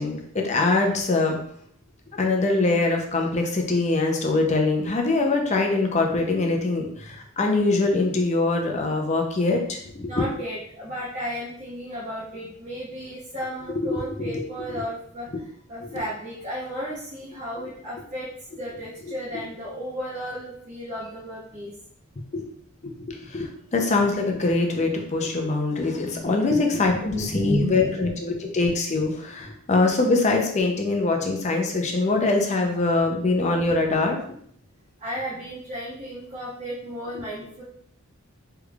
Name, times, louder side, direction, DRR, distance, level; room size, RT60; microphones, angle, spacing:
voice 1, 0.0-1.4 2.1-10.2 13.8-14.4 15.9-16.0 22.3-22.4 22.8-34.2, left 3 dB, 35° left, 2 dB, 0.5 m, -23 dB
voice 2, 10.1-18.3 18.6-21.7 23.1-23.3 26.1-26.3 26.7-27.9 28.4-28.5 35.0-37.6, equal, 35° right, -7 dB, 0.8 m, -34 dB
3.4 x 3.3 x 2.3 m, 0.66 s
head